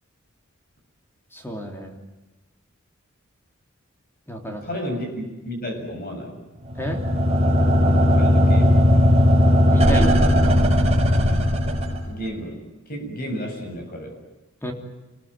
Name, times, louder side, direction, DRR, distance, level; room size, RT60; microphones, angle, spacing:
voice 1, 1.3-1.9 4.3-4.6 6.8-7.0 9.7-10.2 14.6-14.7, equal, 10° left, 3 dB, 3.5 m, -30 dB
voice 2, 4.4-6.4 8.2-9.1 11.2-11.5 12.0-12.6 12.9-14.1, equal, 45° left, 4 dB, 7.7 m, -32 dB
sound 1, 6.7-12.3, left 1 dB, 30° right, 5.4 m, -17 dB
27.5 x 21.5 x 9.1 m, 1.1 s
head